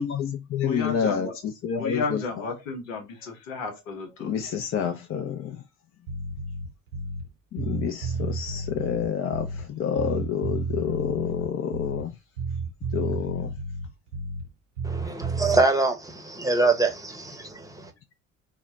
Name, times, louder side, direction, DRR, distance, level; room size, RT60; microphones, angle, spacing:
voice 1, 0.0-2.4 4.2-5.6 7.5-12.1 12.9-13.5, left 8 dB, 35° left, 0.5 m, -28 dB
voice 2, 0.6-1.4 1.8-4.3, left 4 dB, 80° left, 0.9 m, -32 dB
Bass guitar, 6.1-7.3 7.6-9.7 10.0-12.1 12.4-14.5 14.8-15.6, right 3 dB, 85° right, 1.1 m, -32 dB
voice 3, 14.8-17.9, right 3 dB, 10° right, 0.8 m, -24 dB
3.7 x 2.1 x 3.5 m
hypercardioid pair, 60°, 38 cm